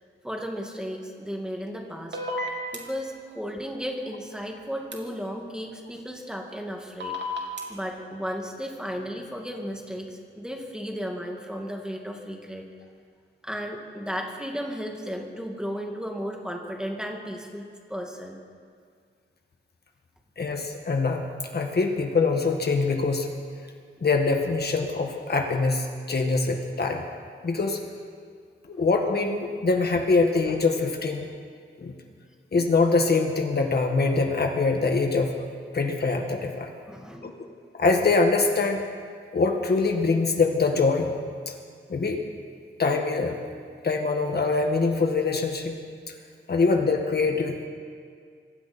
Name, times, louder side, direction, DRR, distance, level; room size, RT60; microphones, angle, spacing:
voice 1, 0.2-2.2 2.7-7.2 7.7-12.7 13.4-18.4 36.9-37.4, equal, 5° right, 0 dB, 2.2 m, -34 dB
sound 1, 2.1-2.8 4.9-5.0 7.0-7.6, left 2 dB, 55° right, 3.1 m, -30 dB
voice 2, 20.4-21.2 21.5-23.3 24.0-27.0 27.4-27.8 28.7-31.3 31.8-31.9 32.5-35.4 35.7-36.7 37.2-37.3 37.7-38.8 39.3-41.1 41.4-41.5 41.9-42.2 42.8-43.4 43.8-45.8 46.1-46.2 46.5-47.7, left 3 dB, 50° left, 3 dB, 1.8 m, -24 dB
26.5 x 22.0 x 4.4 m, 2.1 s
wide cardioid pair, 170°, 21 cm